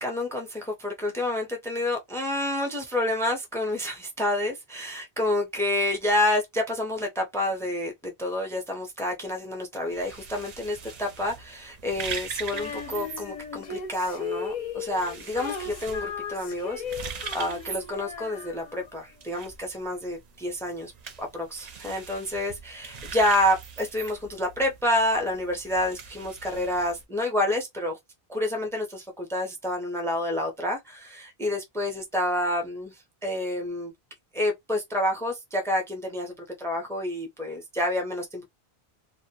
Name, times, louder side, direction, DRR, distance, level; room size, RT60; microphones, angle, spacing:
voice 1, 0.0-20.9 21.2-28.0 28.3-32.9 33.2-33.9 34.3-38.5, left 1 dB, 5° left, 0.4 m, -28 dB
sound 1, 9.9-27.0, right 6 dB, 50° right, 0.5 m, -42 dB
Female singing, 12.5-19.0, left 6 dB, 55° left, 0.6 m, -37 dB
2.1 x 2.1 x 2.7 m
omnidirectional pair, 1.1 m